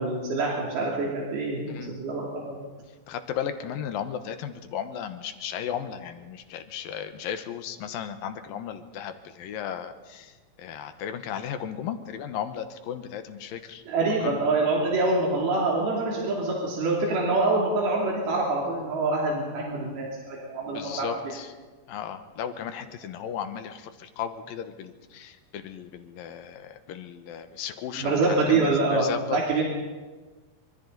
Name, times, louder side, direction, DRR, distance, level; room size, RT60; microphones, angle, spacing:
voice 1, 0.0-2.6 13.9-21.3 28.0-29.1 29.3-29.6, right 3 dB, 90° right, -3 dB, 4.9 m, -25 dB
voice 2, 1.7-2.1 3.1-10.3 10.6-13.8 14.2-14.3 20.6-21.5 21.9-29.4, left 9 dB, 75° left, 8 dB, 2.8 m, -35 dB
26.0 x 24.5 x 4.0 m, 1.3 s
omnidirectional pair, 4.3 m